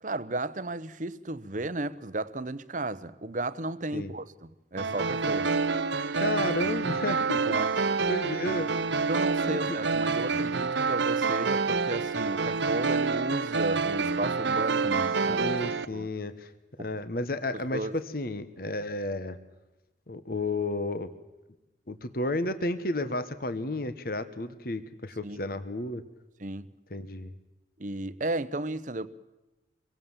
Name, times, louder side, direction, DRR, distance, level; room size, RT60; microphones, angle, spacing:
voice 1, 0.0-5.6 7.4-7.7 9.1-15.4 15.9-16.1 17.7-17.9 25.2-25.4 26.4-26.7 27.8-29.1, right 2 dB, 40° right, 0.9 m, -34 dB
sound 1, 4.8-15.9, right 4 dB, 70° right, 1.0 m, -27 dB
voice 2, 6.2-7.6 8.1-8.7 9.4-9.8 15.3-16.5 16.8-19.4 20.1-21.1 21.9-26.0 26.9-27.3, left 2 dB, 50° left, 1.3 m, -32 dB
26.0 x 23.5 x 7.4 m
head